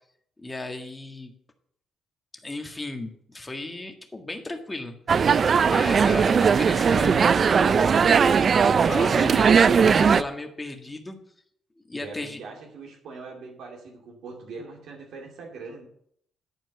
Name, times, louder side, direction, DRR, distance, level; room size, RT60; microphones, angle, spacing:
voice 1, 0.4-1.3 2.4-4.9 5.6-8.2 8.6-11.2 11.9-12.4, left 2 dB, 15° left, 4 dB, 1.7 m, -35 dB
sound 1, 5.1-10.2, right 6 dB, 45° right, 0.4 m, -19 dB
voice 2, 12.0-15.9, right 4 dB, 75° right, 0 dB, 2.5 m, -41 dB
11.0 x 4.5 x 7.9 m, 0.68 s
cardioid pair, 90°, 0 cm